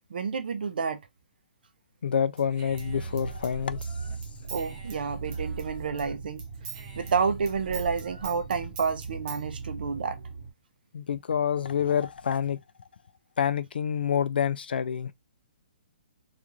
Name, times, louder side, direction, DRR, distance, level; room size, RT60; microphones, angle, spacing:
voice 1, 0.1-1.0 4.5-6.4 7.0-10.2, right 5 dB, 70° right, 0.5 m, -29 dB
voice 2, 2.0-3.9 10.9-12.6 13.4-15.1, left 8 dB, 85° left, 0.3 m, -27 dB
Human voice / Scissors, 2.4-6.1 6.4-9.4, right 4 dB, 25° right, 0.6 m, -45 dB
sound 1, 2.7-10.5, right 4 dB, 45° right, 1.1 m, -39 dB
2.5 x 2.4 x 2.9 m
hypercardioid pair, 165°, 5 cm